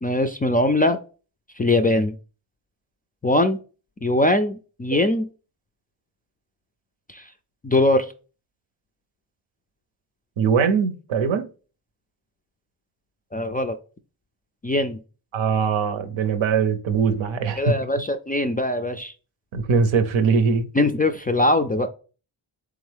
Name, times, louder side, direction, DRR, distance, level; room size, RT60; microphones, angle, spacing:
voice 1, 0.0-1.0 1.6-2.2 3.2-3.6 4.0-5.3 7.1-7.2 7.6-8.1 13.3-13.8 14.6-15.0 17.6-19.1 20.7-21.9, left 1 dB, 20° left, 0.3 m, -21 dB
voice 2, 10.4-11.5 15.3-17.7 19.5-20.7, right 5 dB, 75° right, 0.7 m, -21 dB
3.6 x 3.5 x 3.3 m
cardioid pair, 50°, 47 cm